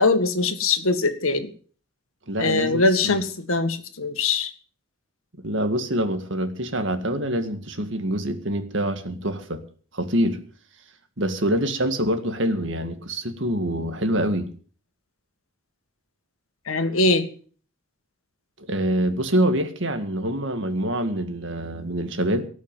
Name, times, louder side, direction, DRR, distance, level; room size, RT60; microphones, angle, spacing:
voice 1, 0.0-1.5 2.4-4.5 16.7-17.3, left 3 dB, 80° left, 1.9 m, -22 dB
voice 2, 2.3-3.2 5.4-9.6 9.9-10.4 11.2-14.5 18.7-22.5, right 1 dB, 60° right, 2.0 m, -25 dB
18.0 x 6.4 x 9.2 m
head